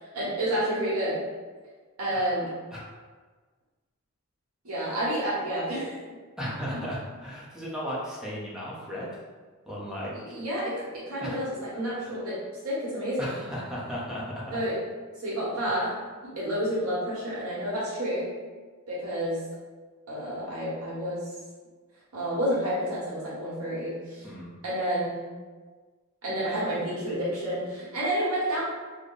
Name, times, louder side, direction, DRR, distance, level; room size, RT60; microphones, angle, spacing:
voice 1, 0.1-1.2 2.0-2.5 4.6-6.0 6.7-6.8 10.1-13.4 14.5-14.8 15.2-15.9 16.2-18.3 18.9-19.4 20.1-21.3 22.1-24.2 24.6-25.3 26.2-28.6, equal, 85° right, -7 dB, 1.4 m, -30 dB
voice 2, 6.4-9.2 9.6-10.1 11.2-11.4 12.0-12.1 13.2-14.6 15.7-15.8 24.2-24.5, equal, 5° right, -6 dB, 0.7 m, -35 dB
3.3 x 2.2 x 3.9 m, 1.4 s
head